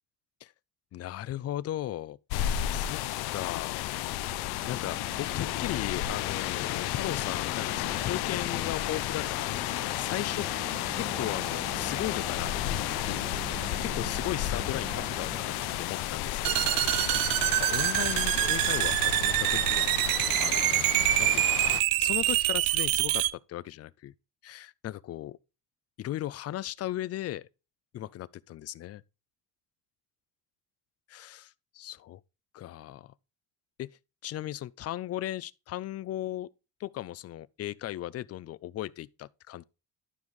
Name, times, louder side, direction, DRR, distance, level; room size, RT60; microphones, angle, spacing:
voice 1, 0.9-3.0 3.3-3.9 4.7-10.5 10.9-13.3 13.8-15.5 15.8-19.9 20.4-20.9 21.2-21.6 22.0-24.1 24.4-25.4 26.0-27.5 27.9-29.0 31.1-32.2 32.5-33.1 33.8-33.9 34.2-36.5 36.8-39.6, left 13 dB, 45° left, 0.4 m, -37 dB
sound 1, 2.3-21.8, left 14 dB, 90° left, 0.6 m, -32 dB
sound 2, 3.6-16.6, right 2 dB, 20° right, 1.5 m, -44 dB
sound 3, 16.4-23.3, right 16 dB, 65° right, 0.5 m, -26 dB
12.0 x 5.3 x 3.1 m
cardioid pair, 125°, 37 cm